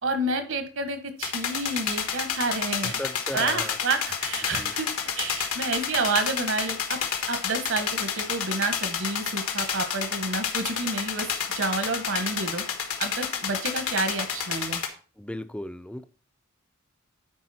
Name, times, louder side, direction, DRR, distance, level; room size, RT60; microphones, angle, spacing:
voice 1, 0.0-2.9 3.3-4.9 5.2-7.0 7.3-11.3 11.5-12.6 13.0-14.8, right 3 dB, 60° right, 1.3 m, -29 dB
sound 1, 1.2-14.9, left 7 dB, 85° left, 1.5 m, -30 dB
voice 2, 2.8-3.8 4.6-4.7 15.2-16.0, left 1 dB, 5° left, 0.4 m, -36 dB
10.0 x 4.7 x 4.3 m
head